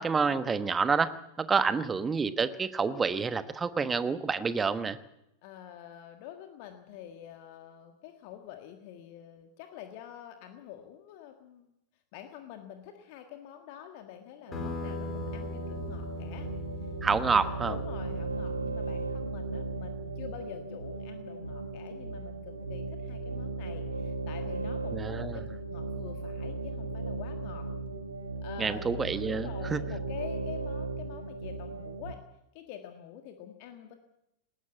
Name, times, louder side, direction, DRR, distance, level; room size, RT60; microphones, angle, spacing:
voice 1, 0.0-5.0 17.0-17.7 24.9-25.4 28.6-29.8, right 5 dB, 15° right, 13 dB, 1.2 m, -28 dB
voice 2, 5.4-11.7 12.1-16.5 17.1-25.3 25.7-27.7 28.4-32.2 32.5-33.9, left 10 dB, 45° left, 6 dB, 1.6 m, -47 dB
sound 1, 14.5-19.6, left 2 dB, 25° left, 4.5 m, -41 dB
sound 2, 14.5-32.1, right 3 dB, 80° right, 1.5 m, -36 dB
19.5 x 16.5 x 8.2 m, 0.84 s
figure-of-eight pair, 90°, 0 cm